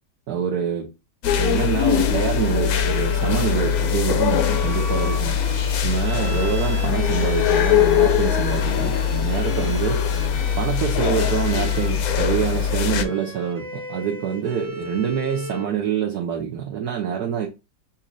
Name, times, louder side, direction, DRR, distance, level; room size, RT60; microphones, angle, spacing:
voice 1, 0.3-0.9 1.4-5.4 5.8-10.0 10.6-17.5, right 8 dB, 70° right, 1.2 m, -26 dB
sound 1, 1.2-13.0, left 8 dB, 70° left, 0.9 m, -21 dB
Bowed string instrument, 2.6-15.8, left 1 dB, 90° right, 2.0 m, -37 dB
7.2 x 2.8 x 2.5 m
omnidirectional pair, 1.9 m